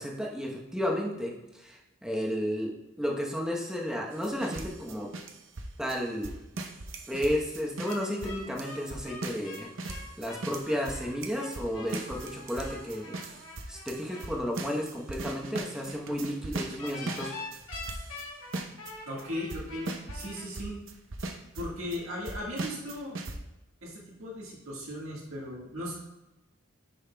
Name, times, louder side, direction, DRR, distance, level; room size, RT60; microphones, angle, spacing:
voice 1, 0.0-2.7 3.0-5.1 5.8-6.3 7.1-9.7 10.2-13.2 13.7-17.4, equal, 5° right, -1 dB, 0.9 m, -32 dB
sound 1, 4.1-18.3 18.5-18.9 19.2-19.3 19.5-20.3 20.5-22.0 22.3-23.4, right 2 dB, 65° right, 0.7 m, -39 dB
sound 2, 7.8-14.3 16.8-20.4, left 3 dB, 70° left, 2.2 m, -44 dB
voice 2, 19.1-20.8 21.5-23.2 23.8-26.0, left 1 dB, 80° right, -3 dB, 1.7 m, -37 dB
10.0 x 5.6 x 2.3 m, 0.99 s
head